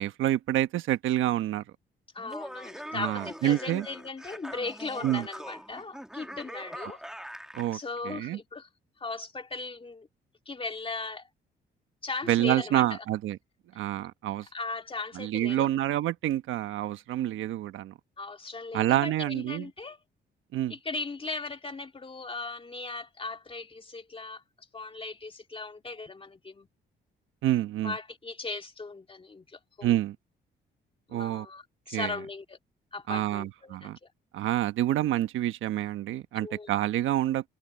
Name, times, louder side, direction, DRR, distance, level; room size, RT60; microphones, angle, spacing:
voice 1, 0.0-1.6 2.9-3.8 5.0-5.3 7.5-7.8 8.0-8.4 12.3-13.4 13.7-14.5 15.1-17.9 18.7-19.7 20.5-20.7 27.4-27.9 29.8-30.2 31.1-31.5 31.9-32.1 33.1-34.0 34.3-37.5, right 13 dB, 85° right, 1.2 m, -27 dB
voice 2, 2.1-7.0 7.7-8.7 9.0-10.1 10.5-11.2 12.0-12.8 14.5-15.7 18.2-20.0 20.7-24.4 24.7-26.7 27.8-30.0 31.1-31.6 31.9-32.6 32.9-33.9 36.3-36.7, left 3 dB, 25° left, 2.2 m, -38 dB
Laughter, 2.2-7.8, equal, 5° right, 2.5 m, -42 dB
cardioid pair, 90°, 20 cm